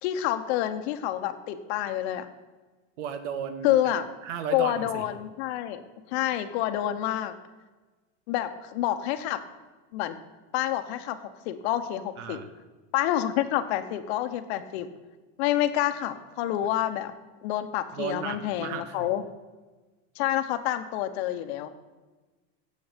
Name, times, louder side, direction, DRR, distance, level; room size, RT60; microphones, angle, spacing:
voice 1, 0.0-2.3 3.6-4.1 4.5-5.8 6.1-7.3 8.3-9.4 9.9-10.1 10.5-11.2 11.4-12.4 12.9-14.9 15.4-17.1 17.4-19.2 20.2-21.7, left 12 dB, 55° left, 9 dB, 1.1 m, -28 dB
voice 2, 3.0-3.9 4.2-5.0 12.2-12.5 17.9-19.1, right 7 dB, 65° right, 10 dB, 1.5 m, -35 dB
17.5 x 7.1 x 5.2 m, 1.3 s
supercardioid pair, 150°, 39 cm